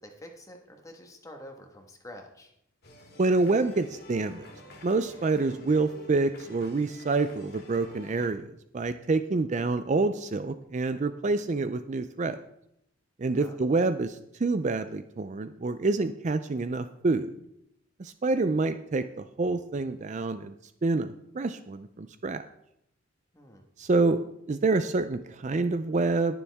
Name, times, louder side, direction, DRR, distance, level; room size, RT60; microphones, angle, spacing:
voice 1, 0.0-2.5 13.2-13.6 23.3-23.6, left 1 dB, 15° left, 3 dB, 1.5 m, -47 dB
sound 1, 2.8-8.3, left 1 dB, 50° left, 2.4 m, -48 dB
voice 2, 3.2-4.5 4.8-12.4 13.2-17.3 18.0-20.5 20.8-22.4 23.8-24.2 24.5-26.4, right 3 dB, 35° right, 11 dB, 0.4 m, -27 dB
20.5 x 7.0 x 3.5 m, 0.78 s
head